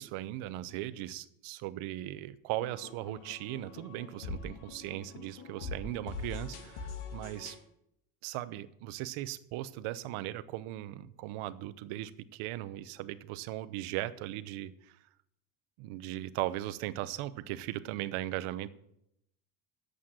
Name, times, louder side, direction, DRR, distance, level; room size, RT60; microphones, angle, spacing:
voice 1, 0.0-7.6 8.2-15.0 15.8-18.7, right 14 dB, 75° right, 14 dB, 1.0 m, -38 dB
sound 1, 2.6-7.6, left 4 dB, 80° left, 2.5 m, -43 dB
11.0 x 8.2 x 7.6 m, 0.78 s
cardioid pair, 120°, 50 cm